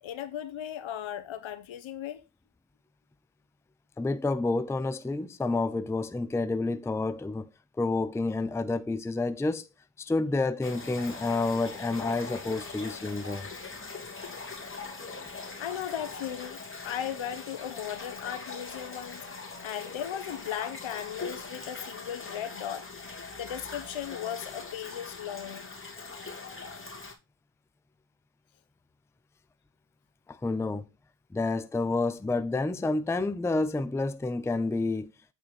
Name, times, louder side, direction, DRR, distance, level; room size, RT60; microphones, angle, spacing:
voice 1, 0.0-2.2 15.6-19.2 19.6-22.9 23.4-25.7, left 10 dB, 65° left, 1.2 m, -37 dB
voice 2, 4.0-7.5 7.8-9.7 10.0-13.5 30.3-30.8 31.3-35.1, left 3 dB, 5° left, 0.5 m, -29 dB
sound 1, 10.6-27.1, left 4 dB, 25° left, 2.5 m, -41 dB
8.7 x 4.5 x 4.4 m
supercardioid pair, 65°, 49 cm